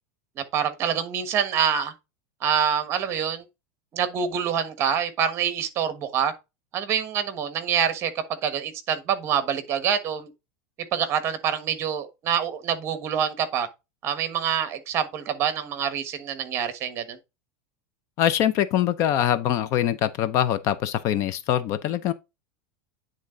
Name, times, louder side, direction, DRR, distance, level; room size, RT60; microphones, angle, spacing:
voice 1, 0.5-1.9 2.4-3.4 3.9-6.3 6.7-8.1 8.4-10.3 10.9-13.7 14.0-17.2, right 8 dB, 30° right, 1.3 m, -26 dB
voice 2, 18.2-22.1, left 11 dB, 35° left, 0.5 m, -23 dB
9.5 x 3.8 x 3.8 m
supercardioid pair, 165°, 9 cm